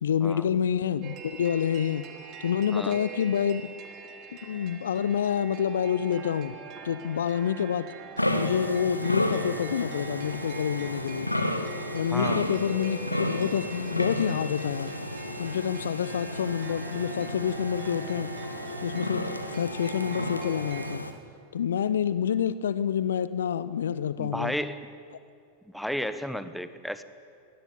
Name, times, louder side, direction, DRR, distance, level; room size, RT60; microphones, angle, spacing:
voice 1, 0.0-2.1 2.4-3.6 4.4-6.5 6.8-7.9 8.3-11.3 11.9-14.9 15.4-18.3 18.8-19.2 19.5-21.1 21.5-24.5, left 8 dB, 65° left, 16 dB, 0.7 m, -28 dB
sound 1, 1.0-21.0, right 6 dB, 35° right, 2.1 m, -44 dB
sound 2, 8.2-21.1, left 1 dB, 85° left, 1.4 m, -32 dB
voice 2, 12.1-12.4 24.2-24.9 25.7-27.0, equal, ahead, 12 dB, 1.1 m, -32 dB
21.0 x 18.5 x 8.2 m, 2.4 s
figure-of-eight pair, 90°, 0 cm